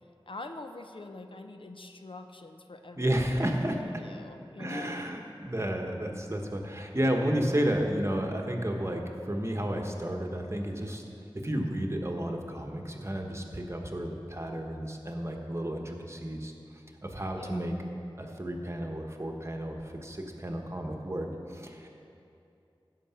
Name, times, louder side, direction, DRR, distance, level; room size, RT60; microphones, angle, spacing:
voice 1, 0.3-3.5 3.8-5.1 17.4-17.7, left 2 dB, 70° left, 6 dB, 0.6 m, -44 dB
voice 2, 3.0-3.8 4.6-16.5 17.0-17.7 18.2-21.9, right 1 dB, 30° right, 2 dB, 1.2 m, -32 dB
15.5 x 6.0 x 5.8 m, 2.6 s
wide cardioid pair, 45°, 9 cm